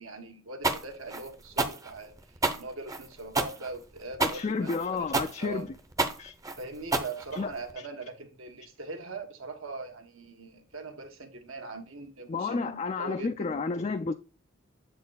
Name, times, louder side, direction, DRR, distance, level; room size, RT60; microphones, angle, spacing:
voice 1, 0.0-5.1 5.4-5.7 6.6-13.5, right 3 dB, 75° right, 1.5 m, -41 dB
sound 1, 0.6-7.7, right 3 dB, 15° right, 0.6 m, -29 dB
voice 2, 4.2-5.7 6.2-6.3 7.3-7.5 12.3-14.1, left 4 dB, 30° left, 0.3 m, -31 dB
7.6 x 4.2 x 4.0 m
head